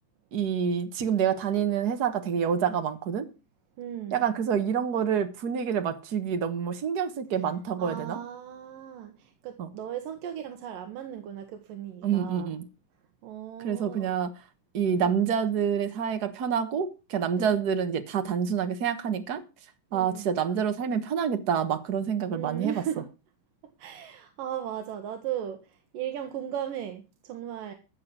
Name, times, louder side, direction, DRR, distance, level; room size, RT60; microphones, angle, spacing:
voice 1, 0.3-3.3 4.1-8.2 9.6-9.7 12.0-12.6 13.6-14.3 14.7-19.4 19.9-22.8, right 7 dB, 65° right, 0.9 m, -27 dB
voice 2, 3.8-4.2 7.8-12.5 13.2-14.1 15.0-15.2 17.4-17.6 19.9-20.3 22.3-23.1 23.8-25.6 25.9-27.7, right 10 dB, 85° right, 3.0 m, -37 dB
15.5 x 6.9 x 6.1 m
omnidirectional pair, 3.8 m